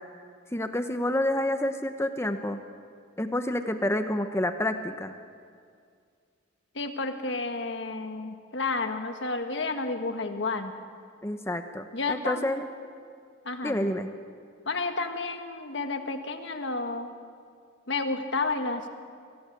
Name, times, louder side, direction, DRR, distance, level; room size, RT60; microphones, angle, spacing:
voice 1, 0.5-2.6 3.2-5.1 11.2-12.6 13.6-14.1, left 1 dB, 15° left, 8 dB, 0.8 m, -28 dB
voice 2, 6.8-10.7 11.9-12.5 13.5-14.0 14.7-17.1 17.9-18.9, left 3 dB, 65° left, 6 dB, 1.7 m, -31 dB
23.5 x 16.5 x 8.3 m, 2.2 s
head